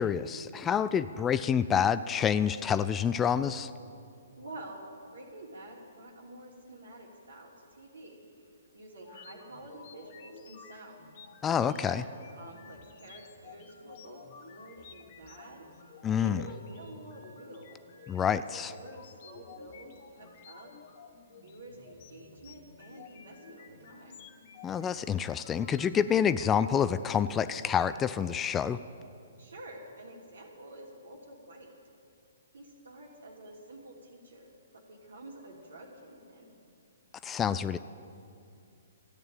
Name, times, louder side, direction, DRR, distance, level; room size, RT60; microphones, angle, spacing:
voice 1, 0.0-3.7 11.4-12.0 16.0-16.4 18.1-18.7 24.6-28.8 37.2-37.8, left 8 dB, 15° left, 14 dB, 0.3 m, -28 dB
voice 2, 4.4-11.1 11.6-15.7 16.2-17.8 18.7-20.7 21.4-24.2 29.4-31.7 32.5-36.6, right 1 dB, 75° right, 1 dB, 2.8 m, -49 dB
sound 1, 9.0-28.2, left 6 dB, 45° left, 1.6 m, -53 dB
13.5 x 9.2 x 8.9 m, 2.6 s
figure-of-eight pair, 130°, 0 cm